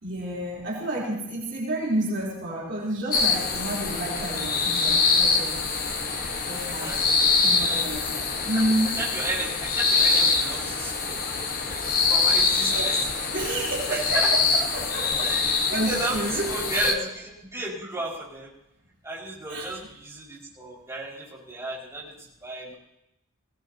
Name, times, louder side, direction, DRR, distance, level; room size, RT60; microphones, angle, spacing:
voice 1, 0.0-5.6 6.4-7.0 7.4-9.0 12.7-13.1 13.3-17.0 19.5-19.8, right 1 dB, 55° right, -5 dB, 3.7 m, -30 dB
sound 1, 3.1-16.9, left 4 dB, 40° left, 1.5 m, -24 dB
voice 2, 6.6-7.0 8.2-8.6 9.0-11.2 11.7-13.0 13.4-13.6 13.9-14.3 15.1-17.0 17.5-18.5 19.0-22.1 22.4-22.7, right 2 dB, 15° right, -7 dB, 5.5 m, -33 dB
20.5 x 18.5 x 2.9 m, 0.83 s
head